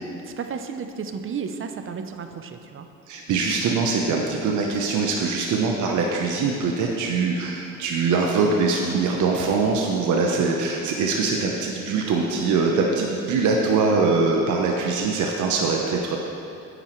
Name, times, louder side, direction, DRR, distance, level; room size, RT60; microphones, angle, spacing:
voice 1, 0.4-2.9, right 6 dB, 45° right, 7 dB, 0.7 m, -33 dB
voice 2, 3.1-16.2, right 4 dB, 80° right, 0 dB, 0.9 m, -23 dB
9.2 x 8.9 x 3.1 m, 2.7 s
cardioid pair, 90°, 30 cm